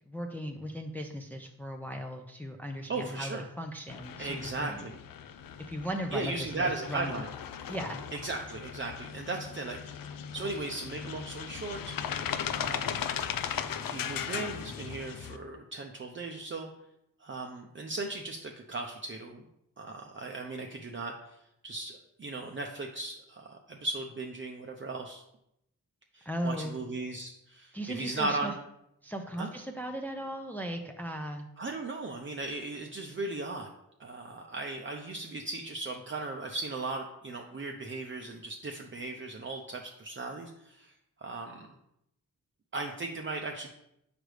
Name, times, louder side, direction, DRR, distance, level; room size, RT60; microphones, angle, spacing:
voice 1, 0.1-4.8 5.7-7.2 7.7-8.0 26.3-26.8 27.7-28.5 29.0-31.5, equal, 5° left, 3 dB, 0.5 m, -37 dB
voice 2, 2.9-3.4 4.2-4.9 6.1-7.3 8.1-9.8 10.1-11.9 12.6-13.1 13.8-16.7 17.2-19.4 19.8-21.4 21.6-25.2 26.1-28.5 29.4-29.5 31.6-33.7 34.0-40.9 41.2-41.7 42.7-43.7, right 3 dB, 35° right, 2 dB, 0.6 m, -37 dB
sound 1, 3.9-15.4, left 8 dB, 75° left, 0.5 m, -38 dB
6.4 x 5.0 x 3.3 m, 0.80 s
cardioid pair, 80°, 34 cm